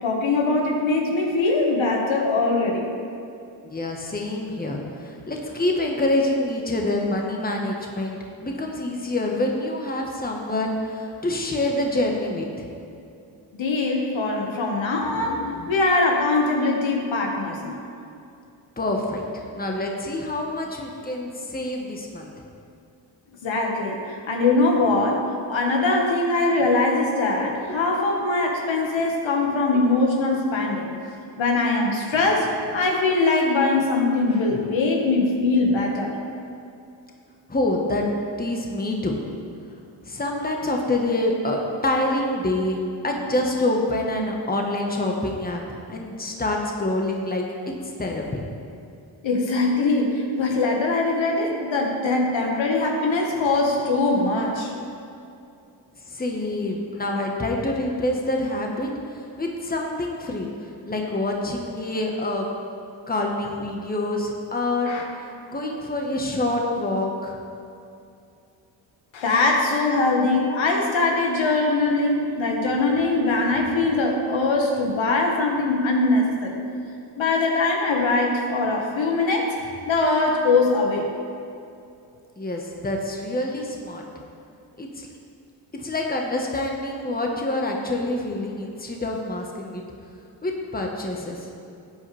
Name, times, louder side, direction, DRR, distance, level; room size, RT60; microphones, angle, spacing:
voice 1, 0.0-2.9 13.5-17.8 23.4-30.9 31.4-36.1 49.2-54.7 64.8-65.0 69.1-76.5 77.2-79.6 79.9-81.1, left 3 dB, 70° left, 0 dB, 1.9 m, -22 dB
voice 2, 3.6-12.7 18.8-22.3 27.7-27.8 37.5-38.1 38.4-39.2 40.0-42.8 43.0-45.6 45.9-47.4 47.8-48.4 56.1-62.5 63.1-67.4 82.4-84.0 84.8-85.1 85.7-89.8 90.4-91.5, left 1 dB, 20° left, 0 dB, 1.5 m, -26 dB
13.5 x 8.5 x 3.5 m, 2.6 s
cardioid pair, 65°, 48 cm